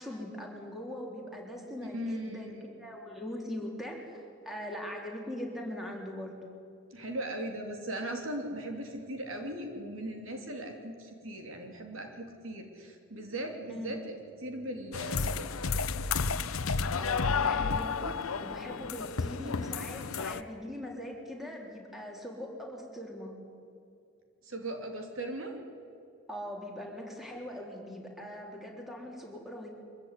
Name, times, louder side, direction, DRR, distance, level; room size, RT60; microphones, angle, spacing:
voice 1, 0.0-6.4 13.7-13.9 16.6-23.4 26.3-29.7, left 1 dB, ahead, 0 dB, 3.7 m, -41 dB
voice 2, 1.9-2.7 6.9-15.5 24.4-25.5, right 1 dB, 70° right, 3 dB, 3.0 m, -38 dB
sound 1, 14.9-20.4, left 5 dB, 90° left, 0.8 m, -31 dB
24.0 x 15.0 x 9.9 m, 2.5 s
head